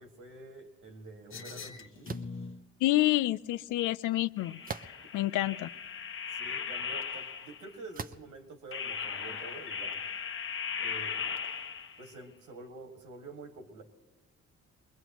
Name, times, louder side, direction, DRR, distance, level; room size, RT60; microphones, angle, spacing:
voice 1, 0.0-2.1 6.3-10.0 10.8-11.3 12.0-13.8, right 3 dB, 80° right, 4 dB, 2.1 m, -48 dB
sound 1, 1.3-2.6 4.4-7.7 8.7-12.1, left 6 dB, 40° left, 1.0 m, -38 dB
sound 2, 2.0-2.4 4.6-5.2 5.9-6.0 7.9-8.3, right 5 dB, 30° right, 0.6 m, -40 dB
voice 2, 2.8-5.7, left 16 dB, 80° left, 17 dB, 0.5 m, -29 dB
22.5 x 21.0 x 3.1 m, 1.1 s
cardioid pair, 90°, 30 cm